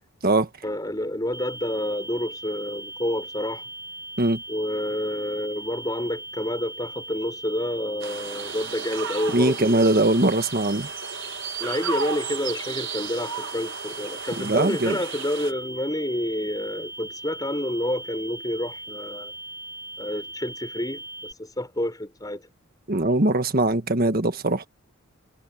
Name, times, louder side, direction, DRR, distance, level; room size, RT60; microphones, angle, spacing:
voice 1, 0.6-3.6 4.5-10.2 11.6-19.3 20.0-22.4, left 1 dB, 15° left, 6.0 m, -29 dB
sound 1, 1.3-21.3, right 2 dB, 15° right, 7.7 m, -39 dB
sound 2, 8.0-15.5, right 6 dB, 60° right, 1.9 m, -34 dB
voice 2, 9.3-10.9 14.4-15.0 22.9-24.6, right 2 dB, 45° right, 1.6 m, -21 dB
head